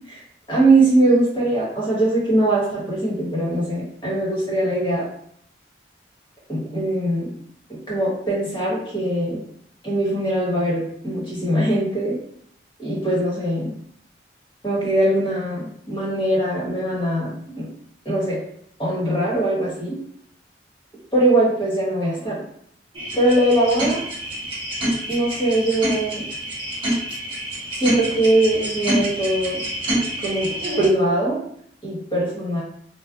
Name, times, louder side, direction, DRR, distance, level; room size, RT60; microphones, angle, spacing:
voice 1, 0.5-5.0 6.5-7.3 7.9-9.4 9.8-12.2 12.8-13.7 14.6-17.7 18.0-18.4 18.8-20.0 21.1-22.4 23.1-24.0 25.1-26.2 27.7-29.6 30.2-30.5 30.8-31.4 31.8-32.6, right 1 dB, 25° left, -8 dB, 1.5 m, -21 dB
sound 1, 22.9-30.9, right 1 dB, 30° right, 0.7 m, -27 dB
3.2 x 2.3 x 2.5 m, 0.66 s
head